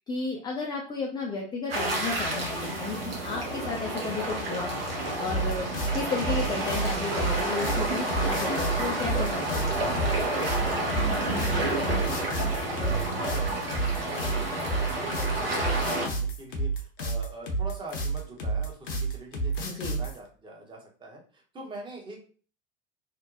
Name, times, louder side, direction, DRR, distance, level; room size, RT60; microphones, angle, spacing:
voice 1, 0.1-4.7 5.2-10.1 19.6-20.0, left 4 dB, 15° left, -1 dB, 0.3 m, -33 dB
sound 1, 1.7-16.1, right 1 dB, 80° right, 0.8 m, -30 dB
sound 2, 5.3-20.2, right 3 dB, 60° left, 0.7 m, -30 dB
voice 2, 10.8-13.0 13.3-22.2, right 1 dB, 15° right, -1 dB, 0.8 m, -44 dB
2.6 x 2.1 x 2.4 m, 0.41 s
figure-of-eight pair, 80°, 29 cm